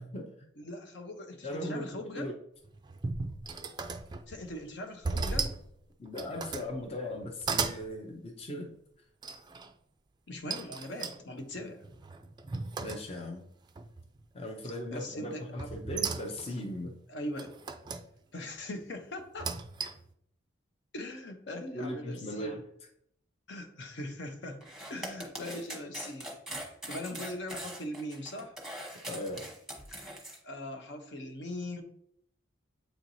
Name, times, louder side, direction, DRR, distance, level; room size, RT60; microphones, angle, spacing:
voice 1, 0.0-0.5 1.4-1.9 2.1-2.3 6.0-8.7 11.6-11.7 12.8-13.4 14.3-16.9 21.7-22.6 29.1-29.4, left 1 dB, 30° left, 2 dB, 0.6 m, -38 dB
voice 2, 0.6-2.3 4.3-5.5 10.3-11.8 14.9-15.7 17.1-17.5 18.3-19.5 20.9-22.5 23.5-24.6 24.9-26.3 26.9-28.5 30.4-31.8, left 1 dB, 60° left, 5 dB, 0.8 m, -40 dB
sound 1, 2.6-4.5 5.0-5.7 6.1-6.7 7.2-7.8 9.2-9.7 10.5-13.4 13.8-14.3 15.6-16.6 17.4-18.1 19.2-20.1, right 4 dB, 20° right, 0.4 m, -36 dB
sound 2, 24.6-30.4, right 1 dB, ahead, 1.0 m, -42 dB
7.8 x 4.5 x 2.7 m, 0.71 s
head